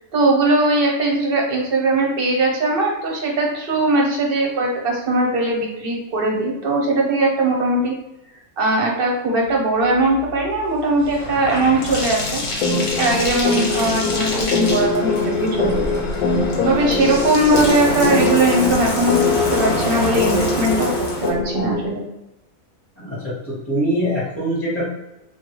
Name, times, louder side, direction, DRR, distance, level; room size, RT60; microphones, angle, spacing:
voice 1, 0.1-7.9 8.6-12.4 13.0-16.0 16.6-22.0, right 2 dB, 55° right, 0 dB, 0.7 m, -20 dB
Bathtub (filling or washing), 9.9-21.3, left 1 dB, 50° left, 0.9 m, -26 dB
sound 1, 12.6-21.9, left 4 dB, 80° left, 1.0 m, -23 dB
voice 2, 23.0-24.9, equal, 15° left, -9 dB, 0.7 m, -23 dB
3.2 x 2.3 x 2.9 m, 0.93 s
omnidirectional pair, 1.5 m